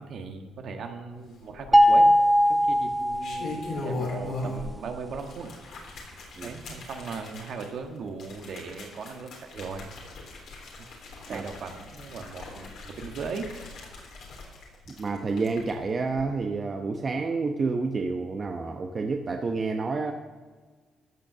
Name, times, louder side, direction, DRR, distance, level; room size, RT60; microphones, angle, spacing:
voice 1, 0.0-2.1 2.6-5.5 6.1-9.9 10.8-10.9 11.3-13.5, right 5 dB, 65° right, 4 dB, 1.5 m, -38 dB
sound 1, 1.5-2.1 2.9-4.8 5.1-15.7 16.1-16.2, left 3 dB, 70° left, 3.4 m, -39 dB
sound 2, 1.7-4.0, equal, 10° right, 1.0 m, -20 dB
voice 2, 15.0-20.1, right 4 dB, 40° right, 4 dB, 0.9 m, -29 dB
14.0 x 6.4 x 6.7 m, 1.4 s
cardioid pair, 90°, 0 cm